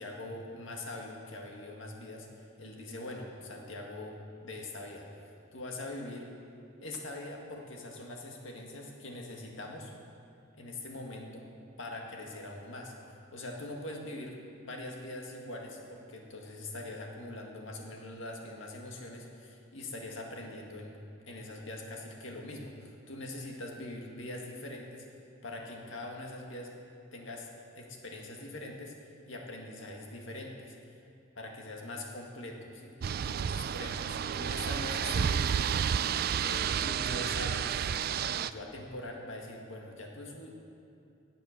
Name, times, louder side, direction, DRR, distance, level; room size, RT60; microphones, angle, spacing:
voice 1, 0.0-6.3 6.8-9.9 10.5-11.5 11.8-21.0 21.2-25.1 25.4-26.7 27.1-27.5 27.8-31.0 31.4-35.7 36.4-37.7 38.1-40.5, left 2 dB, 70° left, 1 dB, 1.9 m, -43 dB
sound 1, 33.0-38.5, right 8 dB, 45° right, 0.3 m, -31 dB
17.5 x 7.9 x 6.6 m, 2.7 s
head